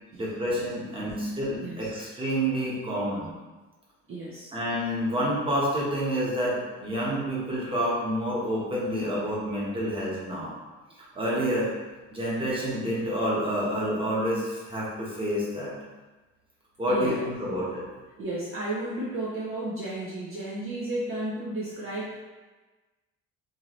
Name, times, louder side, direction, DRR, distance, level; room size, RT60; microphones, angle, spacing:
voice 1, 0.1-3.3 4.5-10.5 11.1-11.7 12.1-15.7 16.8-17.8, equal, 15° right, -6 dB, 1.3 m, -28 dB
voice 2, 1.6-1.9 4.1-4.5 16.9-17.3 18.2-22.2, right 1 dB, 40° right, -6 dB, 0.8 m, -33 dB
4.6 x 2.8 x 3.1 m, 1.2 s
cardioid pair, 120°, 32 cm